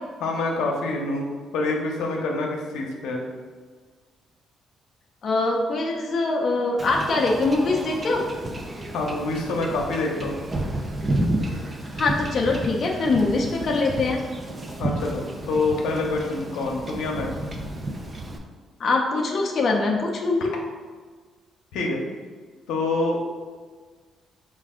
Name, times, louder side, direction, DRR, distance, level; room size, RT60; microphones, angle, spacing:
voice 1, 0.2-1.2 1.5-3.2 8.9-10.4 14.8-17.3 21.7-22.0 22.7-23.3, left 2 dB, 90° left, 0 dB, 0.7 m, -26 dB
voice 2, 5.2-8.2 12.0-14.2 18.8-20.5, left 3 dB, 50° left, 0 dB, 0.4 m, -23 dB
Wind / Ocean / Boat Water vehicle, 6.8-18.4, right 1 dB, 30° right, 0.5 m, -31 dB
4.5 x 2.4 x 3.6 m, 1.5 s
cardioid pair, 90°, 0 cm